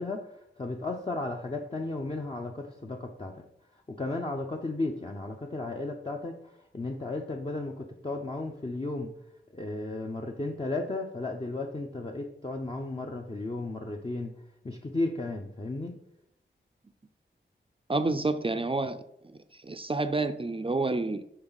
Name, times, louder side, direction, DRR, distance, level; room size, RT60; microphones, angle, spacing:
voice 1, 0.0-3.4 3.9-6.3 6.7-9.1 9.5-14.3 14.6-16.0, left 2 dB, 30° left, 1 dB, 0.7 m, -34 dB
voice 2, 17.9-19.0 19.6-21.2, right 3 dB, 25° right, 9 dB, 0.5 m, -28 dB
9.6 x 3.9 x 4.1 m, 0.78 s
wide cardioid pair, 55°, 20 cm